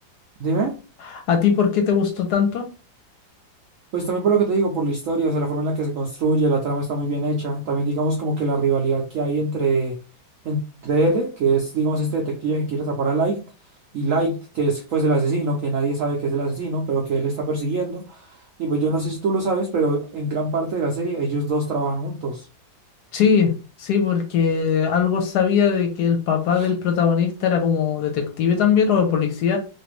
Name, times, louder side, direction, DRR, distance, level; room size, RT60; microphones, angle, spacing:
voice 1, 0.4-0.7 3.9-10.0 10.4-13.5 13.9-18.3 18.6-22.5 26.5-26.7, right 3 dB, 75° right, 1 dB, 0.7 m, -23 dB
voice 2, 1.1-2.7 23.1-23.5 23.8-29.6, left 7 dB, 70° left, 4 dB, 1.1 m, -20 dB
3.2 x 2.5 x 3.0 m, 0.34 s
omnidirectional pair, 2.0 m